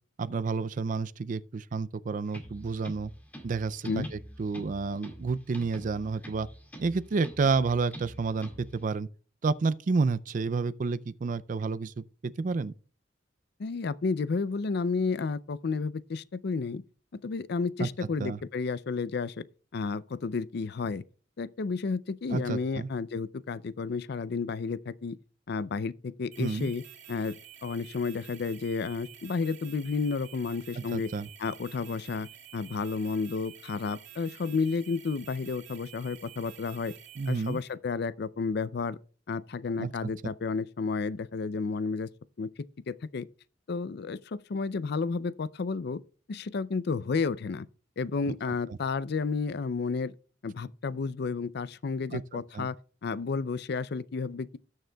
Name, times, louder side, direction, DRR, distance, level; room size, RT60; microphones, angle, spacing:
voice 1, 0.2-3.1 3.4-6.5 6.8-9.1 9.4-12.7 17.8-17.9 18.2-18.4 22.3-22.9 26.4-26.7 30.8-31.3 37.2-37.6 39.8-40.1 48.3-48.4 52.1-52.7, right 4 dB, 45° right, 0.4 m, -30 dB
sound 1, 2.3-8.8, equal, 10° left, 2.1 m, -46 dB
voice 2, 13.6-16.8 17.1-19.4 19.7-21.0 21.4-25.2 25.5-26.8 27.1-27.4 27.6-31.1 31.4-36.9 37.3-39.0 39.3-42.1 42.4-42.5 42.9-43.3 43.7-46.0 46.3-47.7 48.0-50.1 50.4-52.8 53.0-54.5, left 4 dB, 60° left, 0.4 m, -31 dB
sound 2, 26.3-37.7, right 10 dB, 85° right, 2.2 m, -50 dB
19.0 x 6.5 x 2.3 m
head